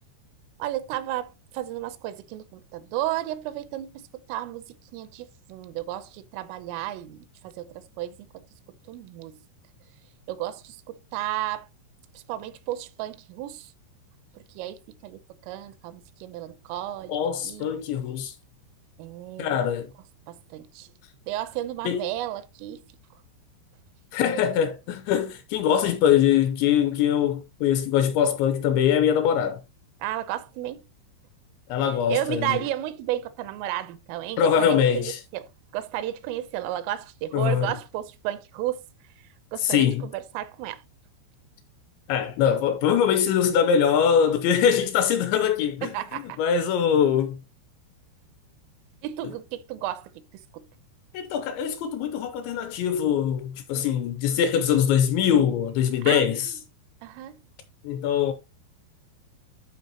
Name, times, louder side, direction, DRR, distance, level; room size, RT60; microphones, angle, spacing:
voice 1, 0.6-8.4 8.9-9.4 10.3-11.7 12.1-13.7 14.4-17.2 17.4-17.7 19.0-19.6 20.3-20.9 21.3-22.8 30.0-30.8 32.1-38.8 39.5-40.8 45.8-46.4 49.0-50.3 50.5-50.7 53.7-53.9 56.0-56.3 57.0-57.4, right 13 dB, 85° right, 3.3 m, -33 dB
voice 2, 17.1-18.3 19.4-19.9 21.9-22.1 24.1-29.6 31.7-32.6 34.4-35.2 37.3-37.7 39.6-40.0 42.1-47.4 51.1-56.5 57.8-58.3, left 8 dB, 85° left, 2.7 m, -23 dB
12.0 x 4.6 x 2.9 m
omnidirectional pair, 5.7 m